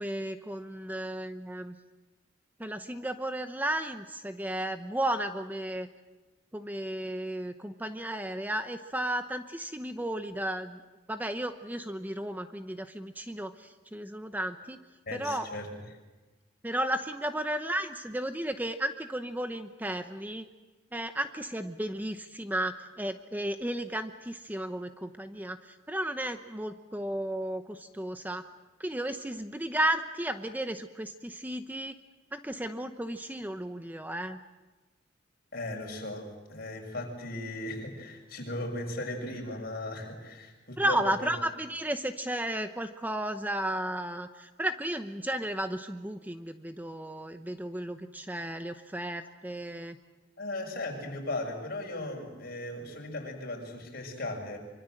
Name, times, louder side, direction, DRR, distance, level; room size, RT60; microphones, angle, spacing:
voice 1, 0.0-1.7 2.6-5.9 6.5-10.8 11.1-14.8 15.1-15.5 16.6-20.5 20.9-28.4 28.8-32.0 32.3-34.4 40.8-50.0, right 1 dB, 10° right, 8 dB, 0.9 m, -34 dB
voice 2, 15.1-15.7 35.5-41.3 50.4-54.6, left 1 dB, 55° left, 1 dB, 6.6 m, -37 dB
25.0 x 25.0 x 7.8 m, 1.2 s
head